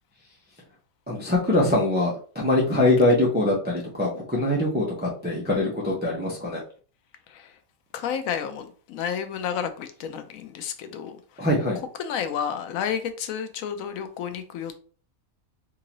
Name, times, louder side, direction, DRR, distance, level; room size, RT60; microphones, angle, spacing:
voice 1, 1.1-6.6 11.4-11.8, left 2 dB, 10° right, 0.6 m, -23 dB
voice 2, 7.9-11.5 11.7-14.8, left 8 dB, 85° left, 1.0 m, -31 dB
3.7 x 2.7 x 2.9 m
omnidirectional pair, 1.4 m